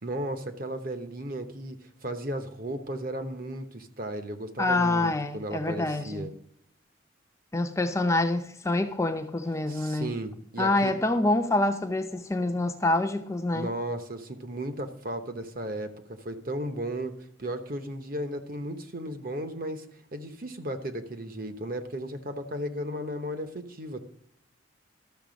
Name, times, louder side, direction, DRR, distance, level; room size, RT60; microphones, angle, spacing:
voice 1, 0.0-6.3 9.7-10.9 13.5-17.1 17.4-19.8 20.1-24.0, right 1 dB, 45° right, 1.0 m, -35 dB
voice 2, 4.6-6.3 7.5-10.1 10.6-13.7, left 2 dB, 15° left, 0.6 m, -26 dB
12.5 x 6.6 x 5.2 m
head